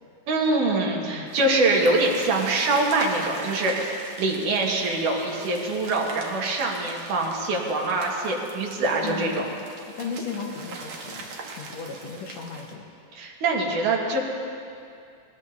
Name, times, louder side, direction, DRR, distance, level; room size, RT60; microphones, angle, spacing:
voice 1, 0.3-9.4 13.1-14.2, right 2 dB, 85° right, -2 dB, 3.2 m, -24 dB
voice 2, 1.0-1.4 9.0-9.6 10.0-11.3 11.5-12.8, left 5 dB, 65° left, 1 dB, 2.2 m, -35 dB
sound 1, 1.3-12.7, right 3 dB, 60° right, 2.4 m, -41 dB
20.5 x 19.5 x 2.7 m, 2.5 s
omnidirectional pair, 3.6 m